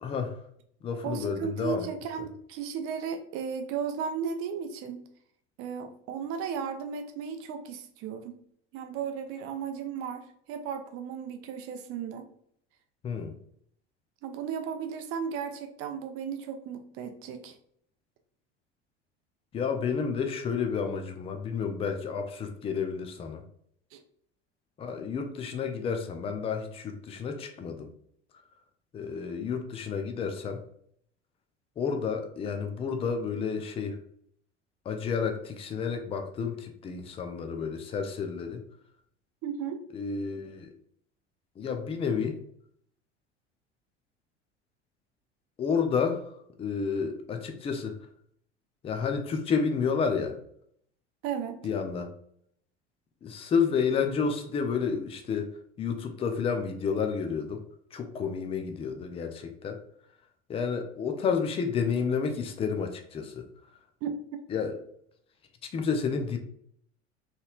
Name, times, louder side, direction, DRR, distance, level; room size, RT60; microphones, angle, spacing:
voice 1, 0.0-0.4 0.8-1.9 13.0-13.3 19.5-23.4 24.8-27.9 28.9-30.6 31.8-34.0 34.8-38.6 39.9-40.7 41.6-42.4 45.6-46.3 46.6-47.9 48.8-50.4 51.6-52.1 53.2-55.5 55.8-57.6 57.9-59.8 60.5-63.4 64.5-64.8 65.7-66.4, left 6 dB, 15° left, 6 dB, 0.4 m, -30 dB
voice 2, 1.0-5.0 5.6-8.4 8.7-12.3 14.2-17.5 23.9-24.0 39.4-39.8 51.2-51.6 64.0-64.1, right 7 dB, 40° right, 7 dB, 0.6 m, -35 dB
3.9 x 3.0 x 2.3 m, 0.67 s
figure-of-eight pair, 70°, 35 cm